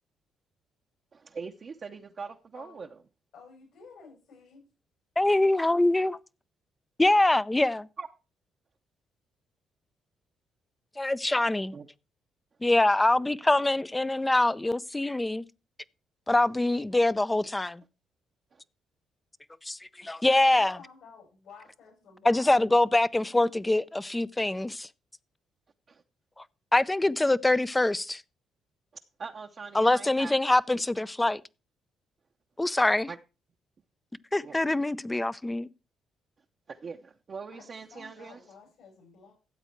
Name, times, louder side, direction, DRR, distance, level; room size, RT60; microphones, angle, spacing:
voice 1, 1.1-2.9 8.0-8.1 11.7-11.9 18.5-18.6 25.9-26.0 29.2-30.4 33.1-33.2 34.4-34.8 36.7-38.4, right 5 dB, 45° right, 0.8 m, -42 dB
voice 2, 2.5-2.9 3.3-4.6 20.0-22.5 37.5-39.3, left 5 dB, 80° left, 7.9 m, -52 dB
voice 3, 5.2-6.2 7.0-7.9 11.0-11.7 12.6-15.4 16.3-17.8 19.6-20.8 22.2-24.9 26.4-26.5 26.7-28.2 29.7-31.4 32.6-33.1 34.3-35.7, left 2 dB, 15° left, 0.5 m, -24 dB
13.5 x 8.1 x 4.5 m
cardioid pair, 90°, 0 cm